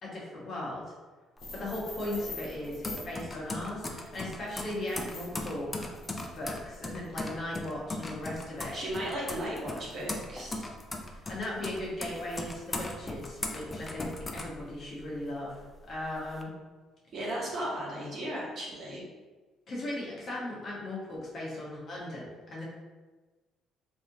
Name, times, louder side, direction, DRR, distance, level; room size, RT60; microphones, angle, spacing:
voice 1, 0.0-0.8 1.5-5.9 6.3-8.8 11.3-15.6 15.9-16.5 19.7-22.6, left 1 dB, 45° left, -5 dB, 1.1 m, -37 dB
sound 1, 1.4-3.1 4.4-7.1, left 2 dB, 70° left, 1.0 m, -45 dB
sound 2, 1.4-15.2 15.6-16.4, left 2 dB, 20° left, 0.4 m, -39 dB
voice 2, 8.7-10.7 17.1-19.0, right 1 dB, 50° right, -5 dB, 1.1 m, -35 dB
3.3 x 2.7 x 2.7 m, 1.3 s
cardioid pair, 110°, 0 cm